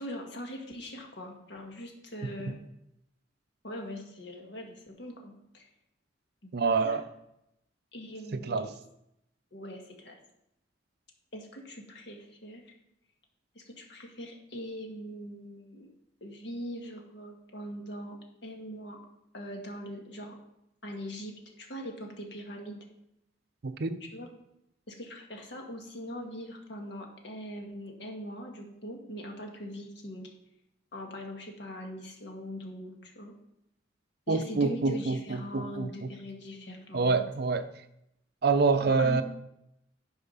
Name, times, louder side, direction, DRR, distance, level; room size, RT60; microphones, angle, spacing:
voice 1, 0.0-2.6 3.6-5.7 6.8-7.0 7.9-8.7 9.5-10.2 11.3-12.6 13.6-15.9 16.2-18.2 18.4-19.0 19.3-20.4 20.8-22.8 24.1-24.3 24.9-30.3 30.9-33.3 34.3-37.2 38.9-39.2, equal, 65° left, 1.7 m, -41 dB
voice 2, 6.5-7.0 8.3-8.7 23.6-24.0 34.3-36.1 36.9-37.7 38.4-39.2, right 4 dB, 55° right, 0.6 m, -27 dB
10.5 x 4.9 x 5.6 m
head